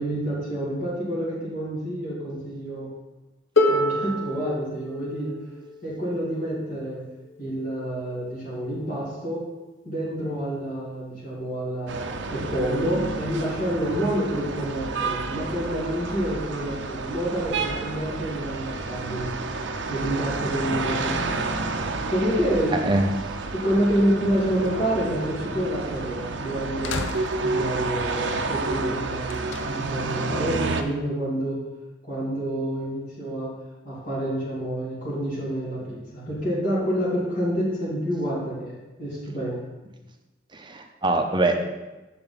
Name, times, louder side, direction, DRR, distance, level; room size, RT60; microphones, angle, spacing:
voice 1, 0.0-2.9 3.7-5.3 5.8-7.0 7.4-9.5 9.8-19.3 19.9-21.5 22.1-22.8 23.5-27.0 27.4-29.3 29.7-31.6 32.0-33.5 33.8-39.7, right 1 dB, 45° left, -8 dB, 2.4 m, -28 dB
Harp, 3.6-9.4 10.4-10.5, left 2 dB, 85° left, 1.1 m, -29 dB
sound 1, 11.9-30.8, right 3 dB, 65° right, 0.6 m, -30 dB
voice 2, 22.7-23.1 40.5-41.8, right 2 dB, 25° right, 4 dB, 0.7 m, -24 dB
sound 2, 26.0-26.1 26.8-27.8 29.3-30.0, left 4 dB, 70° left, 0.6 m, -34 dB
7.0 x 7.0 x 4.1 m, 1.1 s
head